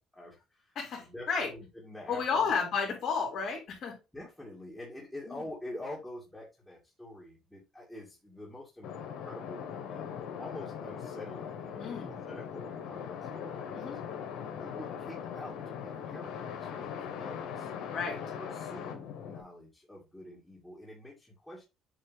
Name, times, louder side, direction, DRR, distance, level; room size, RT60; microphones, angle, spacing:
voice 1, 0.1-2.6 4.1-14.0 14.5-17.7 18.1-21.6, left 1 dB, 5° left, -5 dB, 2.2 m, -46 dB
voice 2, 0.7-1.5 2.1-4.0 5.3-5.4 11.8-12.2 13.7-14.0 17.9-18.2, left 5 dB, 55° left, 0 dB, 3.3 m, -32 dB
sound 1, 8.8-19.4, left 7 dB, 85° left, 1.4 m, -40 dB
7.8 x 3.3 x 4.0 m, 0.26 s
cardioid pair, 115°, 0 cm